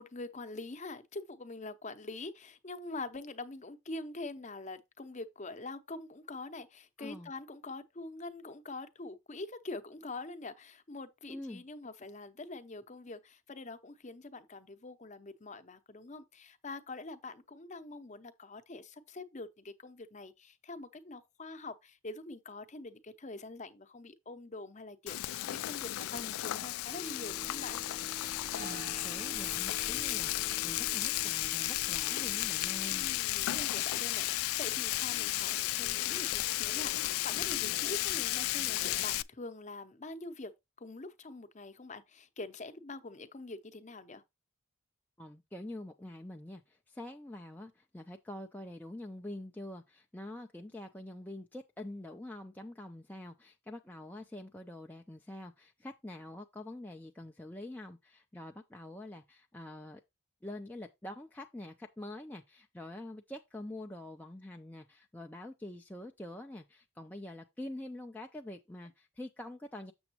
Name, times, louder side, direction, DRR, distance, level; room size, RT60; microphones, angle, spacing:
voice 1, 0.0-27.8 32.9-40.5 40.8-44.2, left 2 dB, 35° left, 0.7 m, -45 dB
voice 2, 7.0-7.3 11.3-11.6 28.6-33.1 45.2-60.0 60.4-69.9, left 1 dB, 10° left, 0.4 m, -46 dB
Frying (food), 25.1-39.2, left 16 dB, 80° left, 0.3 m, -34 dB
sound 1, 26.9-33.2, right 3 dB, 40° right, 0.7 m, -49 dB
7.0 x 7.0 x 2.9 m
head